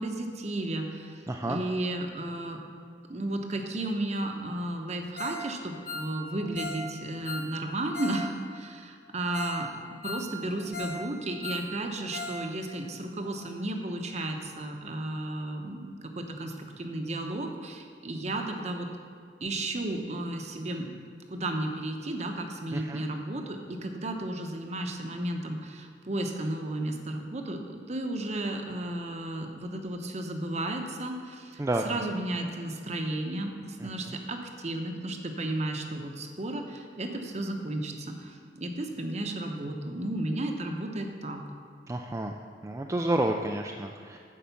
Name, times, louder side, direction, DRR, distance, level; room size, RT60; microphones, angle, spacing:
voice 1, 0.0-2.6 3.1-9.7 10.0-18.9 19.4-20.9 21.3-41.4, right 1 dB, 40° right, 4 dB, 0.9 m, -33 dB
voice 2, 1.3-1.6 22.7-23.0 31.6-31.9 33.8-34.2 41.9-42.3 42.6-44.2, right 1 dB, 15° right, 2 dB, 0.3 m, -30 dB
Ringtone, 5.2-5.5 5.7-8.2 8.5-8.6 9.0-9.1 9.3-9.6 9.9-11.0 11.3-12.4 12.7-12.8 13.2-13.3, left 2 dB, 50° left, 1.3 m, -38 dB
10.0 x 4.9 x 7.0 m, 2.3 s
head